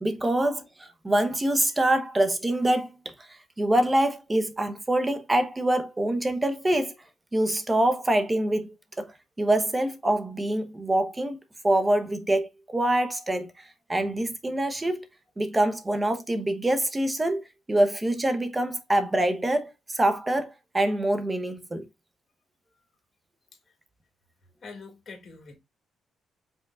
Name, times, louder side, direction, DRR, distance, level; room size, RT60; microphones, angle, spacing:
voice 1, 0.0-6.9 7.3-11.4 11.6-15.0 15.4-21.9, right 1 dB, 20° right, 0.9 m, -25 dB
voice 2, 24.6-25.6, left 4 dB, 45° left, 2.2 m, -45 dB
5.5 x 3.7 x 2.4 m
cardioid pair, 90°, 0 cm